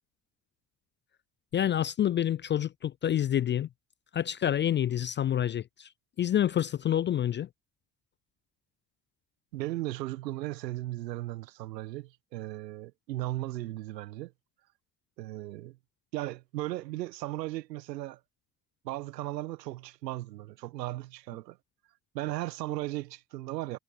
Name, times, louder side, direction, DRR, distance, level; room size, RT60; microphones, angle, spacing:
voice 1, 1.5-3.7 4.1-5.9 6.2-7.5, left 10 dB, 25° left, 0.3 m, -28 dB
voice 2, 9.5-14.3 15.2-15.8 16.1-18.2 18.8-21.6 22.1-23.8, right 16 dB, 85° right, 1.4 m, -36 dB
hypercardioid pair, 55°, 48 cm